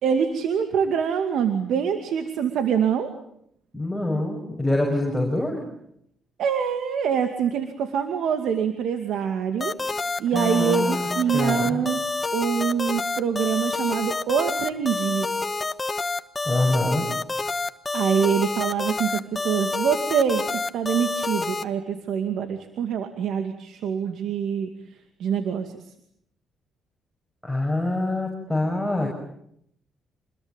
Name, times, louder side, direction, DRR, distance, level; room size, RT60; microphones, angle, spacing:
voice 1, 0.0-3.1 6.4-9.7 10.2-12.0 12.3-15.3 17.9-24.7 25.2-25.8, right 7 dB, 75° right, 7 dB, 2.4 m, -25 dB
voice 2, 3.7-5.6 10.3-11.1 11.3-11.8 16.4-17.1 27.4-29.1, left 1 dB, ahead, -1 dB, 6.8 m, -25 dB
sound 1, 9.6-21.6, left 3 dB, 25° left, 1.6 m, -28 dB
28.5 x 21.5 x 9.1 m, 0.74 s
cardioid pair, 90°, 0 cm